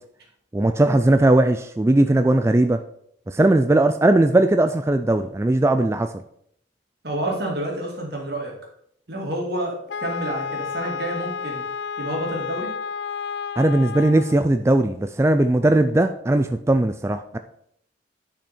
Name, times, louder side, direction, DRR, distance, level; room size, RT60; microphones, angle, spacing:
voice 1, 0.5-2.8 3.3-6.1 13.6-17.4, right 1 dB, 15° right, 8 dB, 0.3 m, -18 dB
voice 2, 7.0-8.5 9.1-11.6 12.0-12.7, right 1 dB, 55° right, -1 dB, 2.5 m, -29 dB
Wind instrument woodwind instrument, 9.9-14.4, left 6 dB, 65° left, 0.4 m, -31 dB
10.5 x 5.7 x 4.4 m, 0.70 s
head